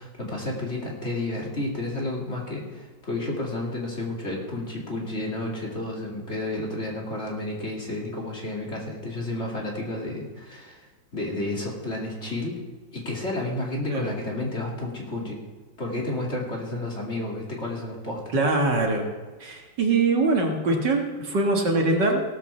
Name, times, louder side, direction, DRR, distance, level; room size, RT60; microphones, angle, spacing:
voice 1, 0.0-10.9 11.1-12.6 12.9-15.4 15.8-18.3, left 2 dB, 35° left, -2 dB, 2.6 m, -31 dB
voice 2, 18.3-19.0 19.4-22.2, right 3 dB, 65° right, 1 dB, 2.2 m, -23 dB
17.5 x 5.9 x 6.9 m, 1.3 s
omnidirectional pair, 2.1 m